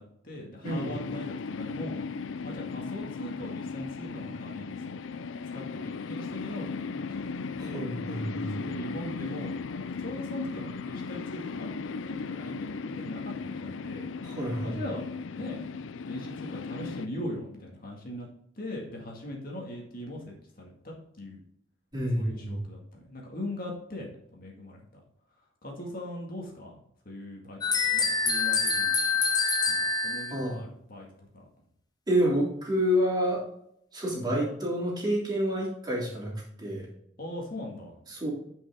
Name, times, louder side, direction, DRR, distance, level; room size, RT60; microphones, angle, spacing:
voice 1, 0.0-2.0 2.4-5.0 5.5-7.3 7.6-7.8 8.5-14.1 14.6-15.1 15.3-15.6 16.1-18.3 18.6-21.4 22.2-25.0 25.6-26.8 27.1-29.1 29.8-31.5 37.2-38.0, left 1 dB, 50° left, -1 dB, 2.1 m, -40 dB
sound 1, 0.6-17.1, left 4 dB, 85° left, 0.5 m, -37 dB
voice 2, 7.6-8.5 14.2-14.8 21.9-22.6 30.3-30.6 32.1-33.4 33.9-36.9 38.1-38.3, equal, 20° right, -4 dB, 3.1 m, -28 dB
sound 2, 27.6-30.4, left 4 dB, 20° left, 0.9 m, -26 dB
10.0 x 5.5 x 3.7 m, 0.70 s
head